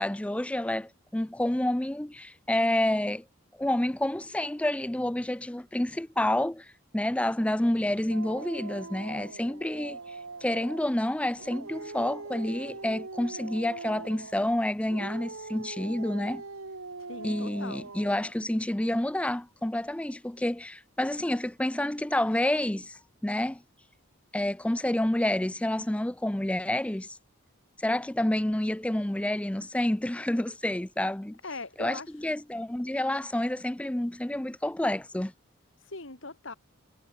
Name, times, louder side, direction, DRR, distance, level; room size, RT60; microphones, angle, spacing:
voice 1, 0.0-3.2 3.6-10.0 10.4-16.4 17.2-23.6 24.3-27.2 27.8-31.4 31.8-35.3, left 1 dB, 5° left, 0.4 m, -29 dB
Dog, 8.1-10.9 11.4-14.5 14.9-18.4, right 3 dB, 90° right, 2.1 m, -42 dB
voice 2, 17.1-17.9 31.4-32.1 35.8-36.5, left 3 dB, 65° left, 2.4 m, -40 dB
head